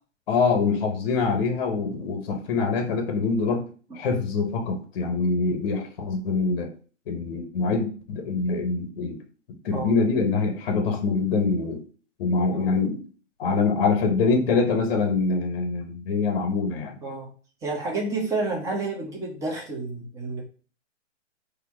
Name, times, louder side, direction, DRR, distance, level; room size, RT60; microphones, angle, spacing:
voice 1, 0.3-3.7 3.9-6.7 7.1-9.2 9.6-11.8 12.2-13.0 13.4-16.9, left 4 dB, 45° left, 5 dB, 0.8 m, -24 dB
voice 2, 17.6-20.4, right 3 dB, 10° right, -1 dB, 0.7 m, -30 dB
4.2 x 2.8 x 4.6 m, 0.39 s
hypercardioid pair, 150°, 37 cm